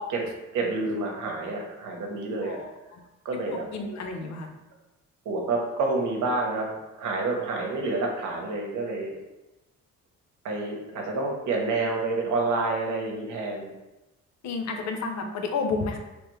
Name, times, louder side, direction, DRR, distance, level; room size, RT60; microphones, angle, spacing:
voice 1, 0.5-2.6 3.2-3.6 5.2-6.7 7.0-9.1 10.4-13.7, right 3 dB, 75° right, 1 dB, 1.0 m, -28 dB
voice 2, 2.4-3.0 3.3-4.5 14.4-16.0, left 4 dB, 65° left, 4 dB, 0.7 m, -31 dB
3.3 x 3.3 x 3.1 m, 1.0 s
cardioid pair, 90°, 30 cm